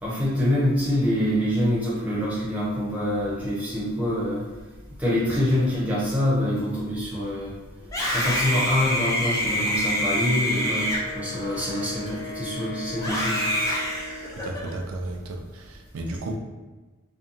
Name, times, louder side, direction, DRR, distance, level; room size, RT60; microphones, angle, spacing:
voice 1, 0.0-4.4 5.0-7.5 8.1-13.4, left 1 dB, 5° right, -9 dB, 0.8 m, -25 dB
Screaming, 7.8-12.3 13.0-14.7, equal, 15° left, 0.4 m, -27 dB
Wind instrument woodwind instrument, 10.5-14.5, left 1 dB, 70° left, 0.6 m, -38 dB
voice 2, 14.4-16.3, right 2 dB, 85° right, 3 dB, 0.4 m, -33 dB
2.8 x 2.2 x 2.6 m, 1.2 s
head